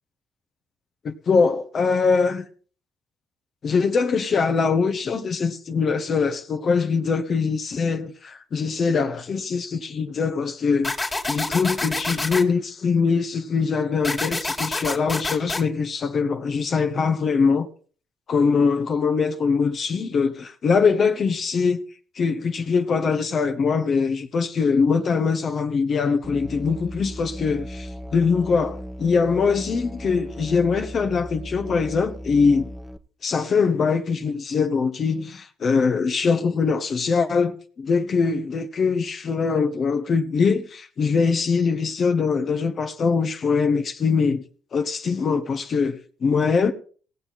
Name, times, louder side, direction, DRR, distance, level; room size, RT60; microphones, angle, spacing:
voice 1, 1.0-2.4 3.6-10.9 11.3-17.7 18.3-21.8 22.2-32.7 33.2-44.4 44.7-46.7, left 5 dB, 50° left, 1.3 m, -22 dB
sound 1, 10.8-12.4 14.0-15.6, left 2 dB, 20° left, 2.4 m, -27 dB
Musical instrument, 26.2-33.0, equal, 5° right, 1.2 m, -37 dB
18.5 x 7.5 x 4.2 m
hypercardioid pair, 55°, 0 cm